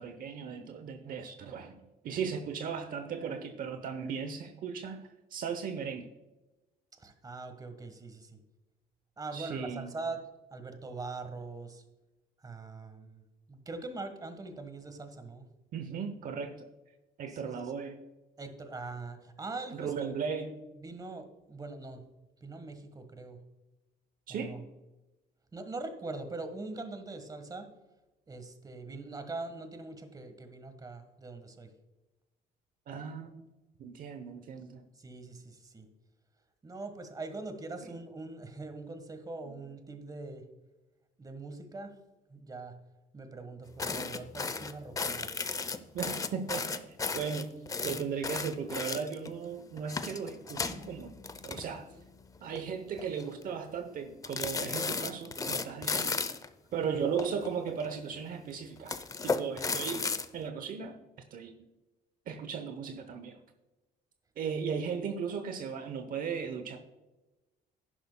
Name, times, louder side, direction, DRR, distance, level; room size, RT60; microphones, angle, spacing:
voice 1, 0.0-1.8 2.0-6.1 9.3-9.9 15.7-16.6 17.2-18.0 19.7-20.5 24.3-24.6 32.9-33.4 33.8-34.8 37.8-37.9 39.4-39.6 45.9-47.5 47.8-51.2 51.4-51.9 52.4-56.1 56.7-59.0 59.2-60.1 60.3-61.0 61.3-61.5 62.3-63.4 64.4-66.8, right 6 dB, 55° right, 8 dB, 0.8 m, -36 dB
voice 2, 7.0-8.4 9.2-10.2 10.5-11.8 12.4-13.2 13.5-15.5 17.3-17.5 18.4-20.1 20.8-22.0 22.4-23.4 24.3-24.6 25.5-27.7 28.3-31.7 35.0-35.9 36.6-40.5 41.2-41.9 42.3-42.7 43.1-45.3, right 3 dB, 20° right, 8 dB, 1.4 m, -42 dB
sound 1, 43.8-49.3 49.8-52.1 52.3-52.6 53.0-53.4 54.2-56.5 57.2-58.0 58.8-60.3, left 4 dB, 20° left, 0.6 m, -35 dB
11.0 x 11.0 x 2.2 m, 1.1 s
cardioid pair, 110°, 17 cm